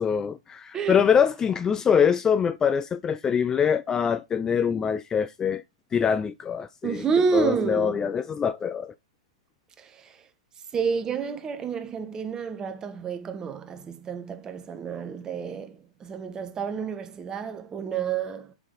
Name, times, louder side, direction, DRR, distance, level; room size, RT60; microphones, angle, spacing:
voice 1, 0.0-5.6 5.9-7.0 7.3-8.9, left 7 dB, 20° left, 0.3 m, -24 dB
voice 2, 0.7-1.1 6.8-8.1 9.8-10.3 10.7-18.5, right 6 dB, 20° right, 1.1 m, -29 dB
6.3 x 5.6 x 3.8 m
hypercardioid pair, 110°, 3 cm